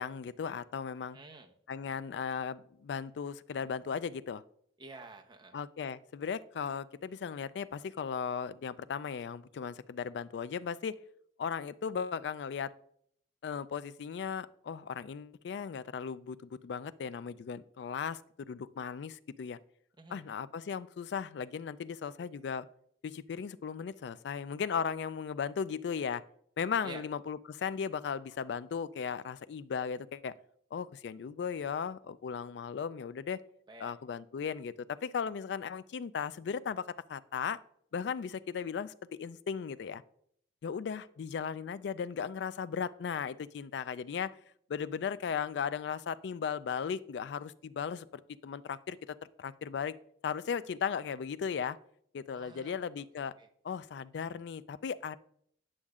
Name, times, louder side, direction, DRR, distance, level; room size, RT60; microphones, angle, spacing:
voice 1, 0.0-1.2 1.7-4.4 5.5-11.0 11.4-12.7 13.4-19.6 20.1-22.7 23.0-26.2 26.6-30.3 30.7-33.4 33.8-37.6 37.9-40.0 40.6-44.4 44.7-48.1 48.4-50.0 50.2-51.8 52.1-53.3 53.6-55.2, left 6 dB, 70° left, 16 dB, 0.3 m, -36 dB
voice 2, 1.1-1.5 4.8-5.6 20.0-20.2 26.8-27.0 33.7-33.9 52.3-53.5, right 3 dB, 25° right, 3 dB, 0.8 m, -50 dB
9.8 x 6.3 x 2.4 m, 0.66 s
head